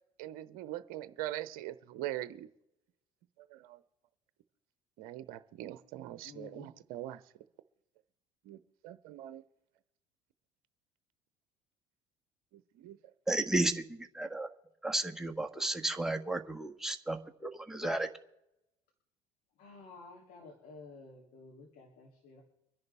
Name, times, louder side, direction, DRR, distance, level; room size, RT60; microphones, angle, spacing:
voice 1, 0.2-2.5 3.5-3.8 5.0-7.2 8.5-8.6 8.8-9.4 12.8-13.0, right 14 dB, 65° right, 13 dB, 0.8 m, -42 dB
voice 2, 6.2-6.7 19.6-22.4, left 4 dB, 60° left, -1 dB, 3.0 m, -52 dB
voice 3, 13.3-14.5 14.8-18.1, right 2 dB, 5° right, 4 dB, 1.6 m, -33 dB
24.5 x 10.5 x 3.5 m, 0.84 s
hypercardioid pair, 65°, 17 cm